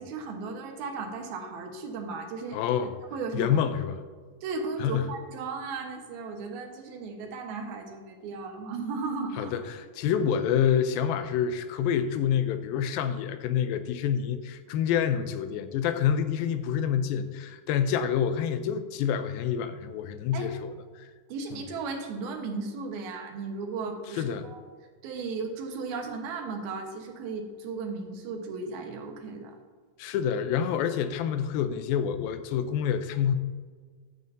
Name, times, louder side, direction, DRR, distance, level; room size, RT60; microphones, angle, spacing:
voice 1, 0.0-2.6 3.1-3.6 4.4-9.5 20.3-20.6 21.3-24.6 25.0-29.5, right 4 dB, 85° right, 3 dB, 3.1 m, -35 dB
voice 2, 2.5-2.9 3.3-4.0 4.8-5.1 9.4-21.1 21.5-21.7 24.1-24.4 30.0-33.4, left 8 dB, 85° left, 10 dB, 2.4 m, -27 dB
14.0 x 9.4 x 2.7 m, 1.5 s
omnidirectional pair, 4.2 m